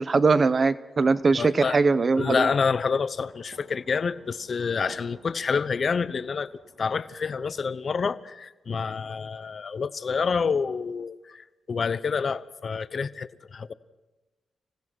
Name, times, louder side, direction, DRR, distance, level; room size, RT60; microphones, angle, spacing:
voice 1, 0.0-2.5, right 4 dB, 40° right, 0.8 m, -21 dB
sound 1, 1.0-7.6, right 3 dB, 75° right, 5.3 m, -54 dB
voice 2, 1.4-1.8 2.2-6.5 6.8-13.7, left 5 dB, 50° left, 0.8 m, -28 dB
26.0 x 16.0 x 6.3 m
cardioid pair, 75°, 0 cm